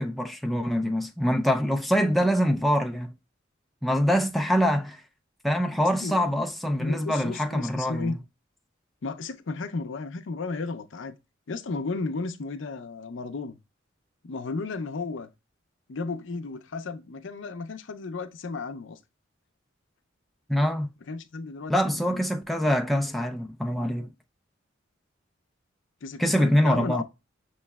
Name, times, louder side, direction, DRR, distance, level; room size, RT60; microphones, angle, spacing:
voice 1, 0.0-3.1 3.8-5.0 5.4-8.2 20.5-20.9 21.7-24.1 26.2-27.0, equal, ahead, 0.4 m, -24 dB
voice 2, 6.8-8.2 9.0-11.2 11.5-13.6 14.2-15.3 15.9-19.0 21.1-22.2 26.0-27.0, left 3 dB, 75° left, 0.5 m, -34 dB
6.5 x 3.1 x 2.2 m
head